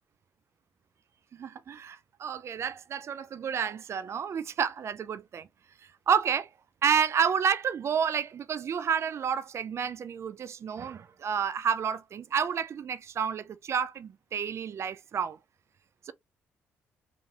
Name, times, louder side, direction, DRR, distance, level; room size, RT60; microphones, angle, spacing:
voice 1, 1.3-5.5 6.1-6.5 6.8-15.4 16.1-16.2, right 7 dB, 45° right, 0.4 m, -30 dB
3.1 x 2.5 x 3.5 m
hypercardioid pair, 45°, 6 cm